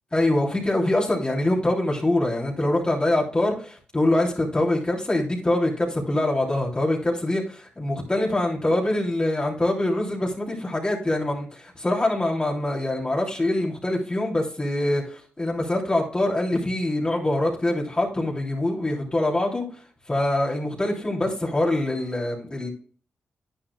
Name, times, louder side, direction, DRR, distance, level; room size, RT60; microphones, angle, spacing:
voice 1, 0.1-19.6 20.1-22.7, left 1 dB, 25° left, 3.2 m, -24 dB
10.5 x 9.7 x 2.3 m
cardioid pair, 60°, 4 cm